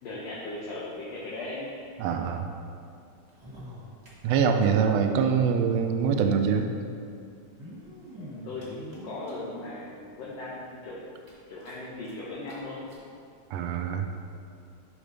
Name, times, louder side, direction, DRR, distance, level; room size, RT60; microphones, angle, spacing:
voice 1, 0.0-1.7 8.1-11.1 11.5-12.9, left 2 dB, 70° left, -6 dB, 1.8 m, -38 dB
voice 2, 2.0-2.5 4.2-6.7 13.5-14.1, right 6 dB, 80° right, 5 dB, 1.5 m, -24 dB
sound 1, 3.3-4.7 4.9-5.0 5.2-5.3 6.4-6.5 7.3-9.6 10.2-10.3 10.7-10.8 11.1-12.1 12.5-12.6 12.9-13.0 13.8-13.9, equal, 25° right, 1.6 m, -46 dB
10.5 x 4.9 x 3.3 m, 2.4 s
omnidirectional pair, 3.4 m